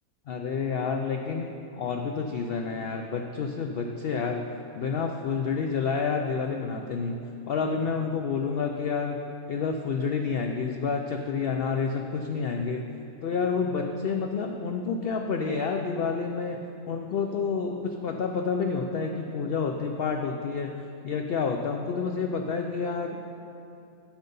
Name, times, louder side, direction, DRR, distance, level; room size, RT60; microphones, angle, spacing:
voice 1, 0.3-4.5 4.7-9.2 9.5-12.8 13.2-16.6 16.9-23.2, left 5 dB, 80° left, 3 dB, 0.5 m, -29 dB
9.3 x 7.2 x 5.4 m, 2.7 s
omnidirectional pair, 1.6 m